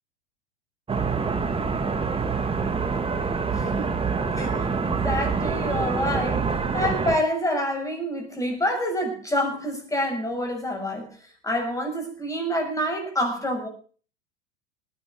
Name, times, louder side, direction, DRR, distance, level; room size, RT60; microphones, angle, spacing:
sound 1, 0.9-7.2, right 5 dB, 15° right, 2.3 m, -26 dB
voice 1, 3.6-3.9 4.3-11.1 11.4-13.7, left 1 dB, 10° left, 3 dB, 7.2 m, -27 dB
19.0 x 11.0 x 6.3 m, 0.41 s
figure-of-eight pair, 90°, 36 cm